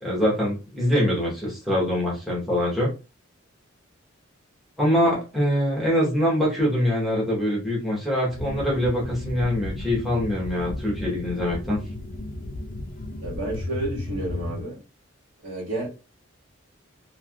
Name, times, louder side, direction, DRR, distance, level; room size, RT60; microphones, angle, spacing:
voice 1, 0.0-2.9 4.8-11.8, equal, ahead, 1.1 m, -24 dB
sound 1, 8.3-14.6, left 2 dB, 40° left, 0.5 m, -34 dB
voice 2, 13.2-14.8 15.4-15.9, right 1 dB, 60° right, 1.7 m, -31 dB
3.3 x 2.6 x 2.4 m
head